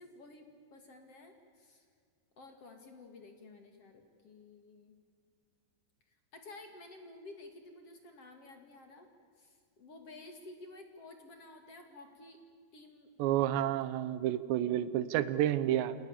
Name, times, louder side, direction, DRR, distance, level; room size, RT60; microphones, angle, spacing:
voice 1, 0.0-1.9 2.4-4.9 6.1-9.1 9.4-12.4 12.7-13.1, left 2 dB, 40° left, 4 dB, 2.6 m, -53 dB
voice 2, 13.2-16.0, right 12 dB, 90° right, 14 dB, 3.3 m, -30 dB
28.5 x 28.0 x 7.3 m, 2.2 s
omnidirectional pair, 4.9 m